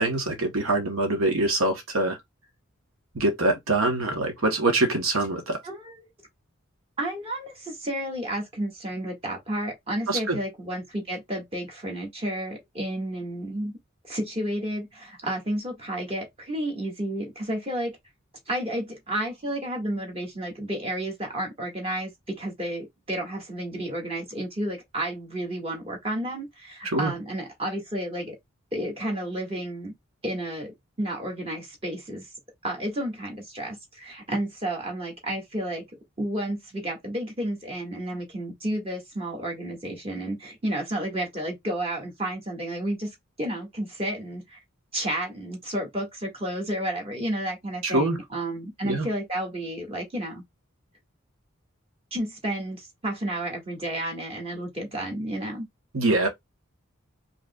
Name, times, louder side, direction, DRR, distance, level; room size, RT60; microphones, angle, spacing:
voice 1, 0.0-2.2 3.1-5.6 10.1-10.4 26.8-27.1 47.8-48.2 48.8-49.1 55.9-56.3, right 2 dB, 85° right, 1.0 m, -24 dB
voice 2, 5.6-6.1 7.0-13.7 14.0-17.9 18.5-28.3 28.7-29.9 30.2-32.3 32.6-35.8 36.2-43.1 43.4-44.6 44.9-50.4 52.1-55.7, right 1 dB, 30° right, 1.7 m, -31 dB
5.1 x 3.1 x 2.3 m
head